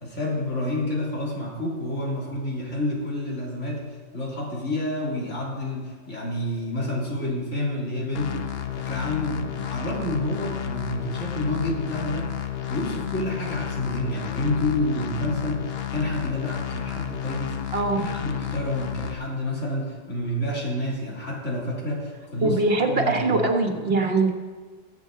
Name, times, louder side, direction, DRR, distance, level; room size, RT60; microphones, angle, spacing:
voice 1, 0.0-3.8 4.1-12.3 12.7-22.6 22.9-23.4, left 1 dB, 75° left, -3 dB, 3.1 m, -29 dB
sound 1, 8.1-19.1, left 10 dB, 60° left, 0.9 m, -32 dB
voice 2, 17.7-18.1 22.4-24.3, right 3 dB, 55° right, 3 dB, 1.5 m, -22 dB
21.0 x 7.5 x 3.8 m, 1.5 s
omnidirectional pair, 1.3 m